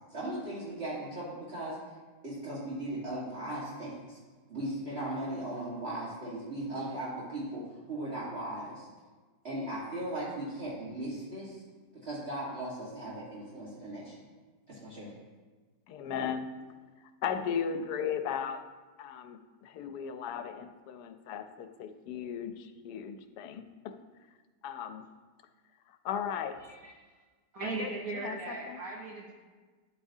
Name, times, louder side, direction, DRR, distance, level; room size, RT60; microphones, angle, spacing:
voice 1, 0.1-1.9 2.2-4.2 4.5-8.9 9.4-11.6 12.0-14.1 14.7-15.1, right 1 dB, 40° right, -7 dB, 1.7 m, -38 dB
voice 2, 15.9-16.5 17.2-18.6 19.0-23.6 24.6-25.0 26.0-26.6 27.6-28.8, left 7 dB, 85° left, 9 dB, 1.2 m, -36 dB
voice 3, 27.5-29.3, right 3 dB, 65° right, -2 dB, 1.3 m, -38 dB
11.0 x 8.3 x 2.7 m, 1.4 s
omnidirectional pair, 1.7 m